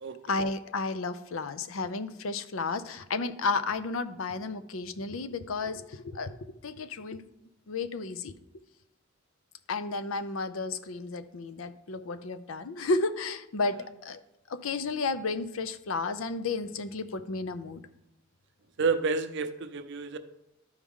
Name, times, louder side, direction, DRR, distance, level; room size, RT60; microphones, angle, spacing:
voice 1, 0.3-6.4 6.6-7.3 7.7-8.3 9.7-14.2 14.5-17.8, left 3 dB, 80° left, 11 dB, 0.6 m, -32 dB
voice 2, 18.8-20.2, right 4 dB, 60° right, 9 dB, 0.6 m, -29 dB
12.5 x 4.8 x 3.6 m, 0.88 s
head